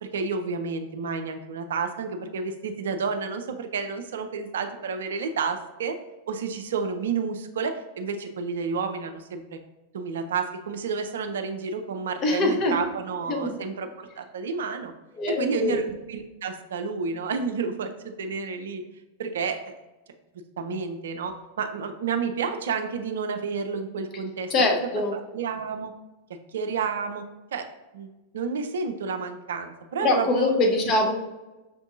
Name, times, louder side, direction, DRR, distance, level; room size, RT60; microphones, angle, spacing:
voice 1, 0.0-6.0 6.3-9.6 9.9-14.9 15.3-17.9 18.2-18.8 19.2-19.7 20.6-24.5 25.0-25.9 26.5-27.2 27.5-27.7 27.9-28.1 28.3-30.8, right 5 dB, 60° right, 6 dB, 0.4 m, -30 dB
voice 2, 12.2-12.8 13.3-13.5 15.2-15.8 24.5-25.1 30.0-31.1, left 2 dB, 35° left, 2 dB, 0.8 m, -23 dB
6.0 x 2.6 x 2.5 m, 1.1 s
figure-of-eight pair, 90°, 0 cm